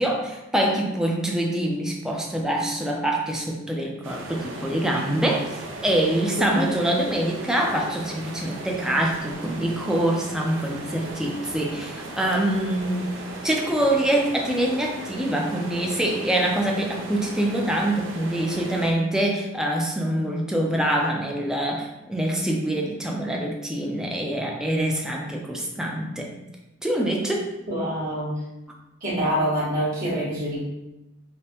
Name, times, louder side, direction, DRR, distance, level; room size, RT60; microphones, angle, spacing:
voice 1, 0.0-13.2 13.4-26.3 26.8-27.5, right 1 dB, 5° right, -1 dB, 0.4 m, -25 dB
sound 1, 4.0-18.9, right 2 dB, 65° right, 0.5 m, -37 dB
voice 2, 27.7-28.3 29.0-30.6, right 1 dB, 45° right, -9 dB, 1.4 m, -25 dB
5.1 x 2.1 x 2.9 m, 0.95 s
head